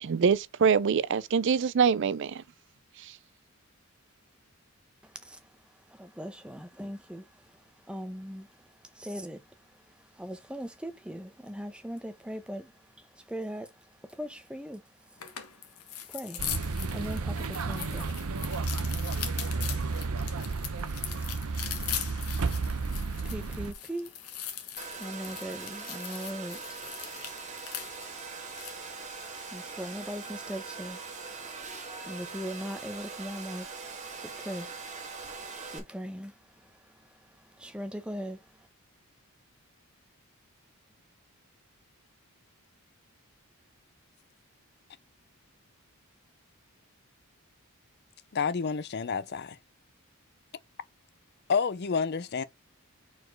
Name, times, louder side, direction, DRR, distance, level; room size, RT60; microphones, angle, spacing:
voice 1, 0.0-2.4 3.0-3.1, right 6 dB, 55° right, 0.4 m, -24 dB
voice 2, 5.0-15.4 15.7-18.5 22.8-23.0 23.2-24.4 24.9-27.0 27.3-27.8 28.9-31.3 31.7-33.8 34.2-38.4, equal, 5° right, 0.8 m, -41 dB
sound 1, 15.2-28.8, left 10 dB, 80° left, 1.4 m, -40 dB
sound 2, 16.4-23.7, right 4 dB, 75° right, 0.7 m, -32 dB
Domestic sounds home sounds, 24.8-35.8, right 4 dB, 30° right, 1.7 m, -42 dB
voice 3, 48.3-49.6 51.5-52.4, left 5 dB, 45° left, 0.5 m, -29 dB
4.8 x 4.3 x 4.5 m
head